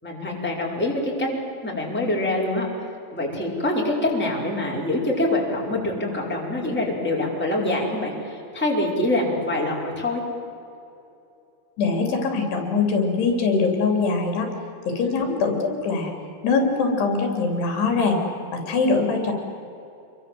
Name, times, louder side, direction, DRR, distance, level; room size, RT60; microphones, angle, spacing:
voice 1, 0.0-2.7 3.1-10.2 15.0-15.2, left 1 dB, ahead, -3 dB, 4.4 m, -25 dB
voice 2, 11.8-14.5 14.9-16.1 16.4-18.2 18.5-19.3, left 4 dB, 70° left, 3 dB, 5.3 m, -22 dB
28.0 x 23.5 x 7.8 m, 2.7 s
omnidirectional pair, 5.1 m